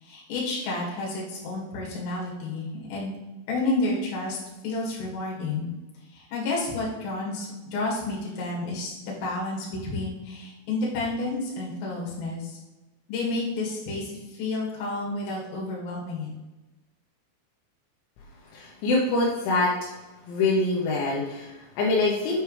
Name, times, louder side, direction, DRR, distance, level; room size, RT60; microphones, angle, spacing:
voice 1, 0.0-3.2 3.5-4.4 4.6-5.7 6.1-12.5 13.1-16.3, left 2 dB, 70° left, -4 dB, 4.0 m, -30 dB
voice 2, 18.5-19.7 20.3-22.4, left 2 dB, 85° left, -4 dB, 3.4 m, -24 dB
9.2 x 4.7 x 3.2 m, 1.1 s
omnidirectional pair, 5.3 m